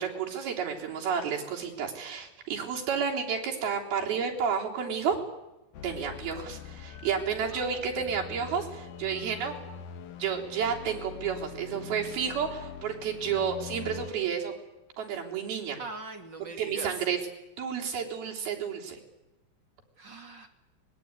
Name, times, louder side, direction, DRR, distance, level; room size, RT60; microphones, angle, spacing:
voice 1, 0.0-5.2 5.8-9.6 10.2-14.5 15.0-15.8 16.6-17.2 17.6-19.0, right 7 dB, 80° right, 0 dB, 5.5 m, -31 dB
sound 1, 5.7-14.1, left 7 dB, 65° left, 2.7 m, -44 dB
voice 2, 7.5-7.9 15.8-17.0 20.0-20.5, right 3 dB, 35° right, 5 dB, 2.6 m, -41 dB
24.5 x 21.0 x 9.7 m, 0.98 s
omnidirectional pair, 4.3 m